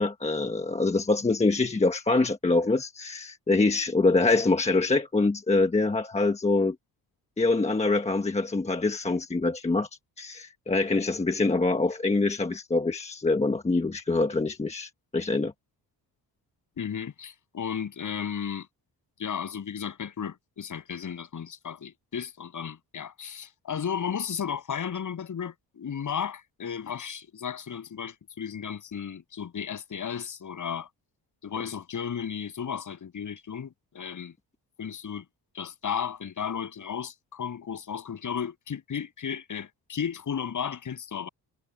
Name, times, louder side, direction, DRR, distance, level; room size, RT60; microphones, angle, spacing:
voice 1, 0.0-6.8 7.4-9.9 10.2-15.5, left 3 dB, 15° left, 1.3 m, -25 dB
voice 2, 16.8-18.7 19.2-30.9 31.4-34.3 34.8-35.2 35.5-41.3, left 7 dB, 45° left, 7.6 m, -34 dB
wide cardioid pair, 170°, 42 cm